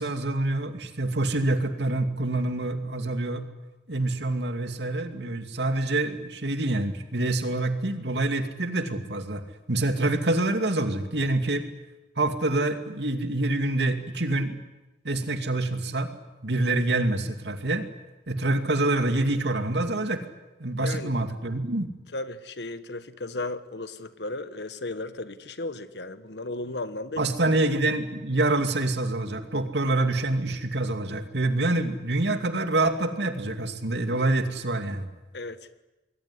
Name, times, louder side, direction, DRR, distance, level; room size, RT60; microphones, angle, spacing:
voice 1, 0.0-3.4 3.9-11.7 12.2-14.6 15.0-16.1 16.4-17.8 18.3-20.2 20.6-21.9 27.2-35.1, right 2 dB, 75° right, 2.5 m, -26 dB
voice 2, 20.8-21.1 22.1-27.2 35.3-35.6, left 2 dB, 75° left, 1.5 m, -35 dB
26.0 x 21.5 x 10.0 m
head